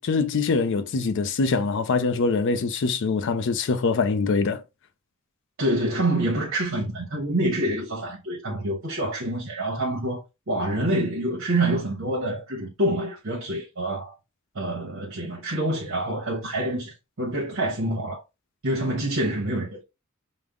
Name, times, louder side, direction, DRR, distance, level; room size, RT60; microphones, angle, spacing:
voice 1, 0.0-4.6, left 4 dB, 60° left, 0.5 m, -24 dB
voice 2, 5.6-10.2 10.5-14.1 14.5-18.2 18.6-19.8, right 1 dB, 65° right, 1.0 m, -26 dB
5.2 x 2.1 x 3.6 m
head